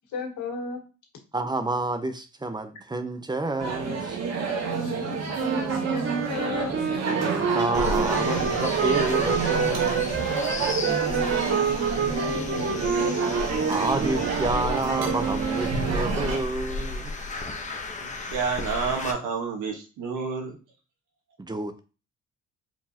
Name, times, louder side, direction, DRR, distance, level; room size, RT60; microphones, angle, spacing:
voice 1, 0.1-0.9 4.6-6.8 10.7-13.4, left 2 dB, 80° left, 1.8 m, -34 dB
voice 2, 1.3-4.2 7.1-10.3 13.7-17.2 21.4-21.8, right 2 dB, 15° right, 0.7 m, -29 dB
sound 1, 3.6-16.4, right 5 dB, 60° right, 1.3 m, -29 dB
sound 2, 5.4-16.1, right 6 dB, 40° right, 0.9 m, -29 dB
sound 3, 7.7-19.1, left 3 dB, 25° left, 1.0 m, -35 dB
voice 3, 17.7-20.6, right 5 dB, 85° right, 1.5 m, -30 dB
4.8 x 3.5 x 2.9 m
cardioid pair, 90°, 30 cm